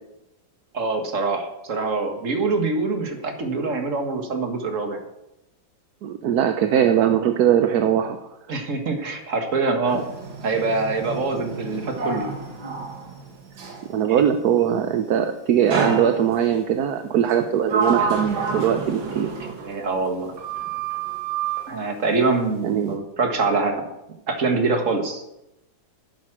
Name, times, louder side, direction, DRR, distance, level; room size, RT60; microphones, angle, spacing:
voice 1, 0.7-5.0 8.5-10.1 10.4-12.3 14.1-14.2 14.6-14.9 19.6-20.4 21.7-23.9 24.3-25.2, right 3 dB, 40° right, 5 dB, 1.9 m, -24 dB
voice 2, 6.0-8.3 13.9-19.3 22.6-23.0, right 9 dB, 65° right, 7 dB, 1.1 m, -21 dB
Sliding door, 9.9-13.9 15.7-16.6 17.3-20.1 20.4-21.7, right 5 dB, 80° right, 2.8 m, -29 dB
11.0 x 9.6 x 6.1 m, 0.88 s
omnidirectional pair, 2.1 m